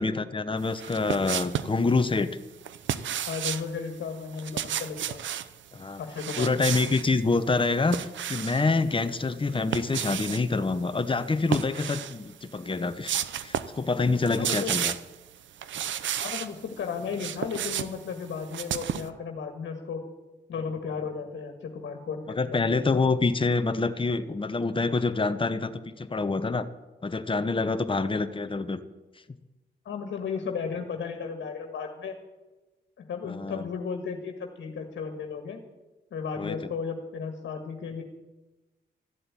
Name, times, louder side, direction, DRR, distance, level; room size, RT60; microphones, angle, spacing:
voice 1, 0.0-2.3 5.7-6.0 6.4-13.1 13.4-14.9 22.3-26.7 27.0-28.8 33.2-33.7 36.4-36.6, left 3 dB, 25° left, 10 dB, 1.0 m, -26 dB
sound 1, 0.7-1.8 2.6-3.7 4.3-5.5 6.1-7.1 7.5-8.7 9.5-10.4 11.4-12.2 12.6-12.7 13.0-13.8 14.1-15.1 15.6-16.5 16.9-19.1, right 10 dB, 85° right, 0.7 m, -32 dB
voice 2, 3.3-5.2 6.0-6.7 14.4-14.7 16.2-20.0 20.5-23.0 29.8-32.1 33.0-35.6 36.1-38.0, left 6 dB, 85° left, 4 dB, 1.7 m, -34 dB
14.0 x 7.9 x 9.9 m, 1.1 s
cardioid pair, 60°, 19 cm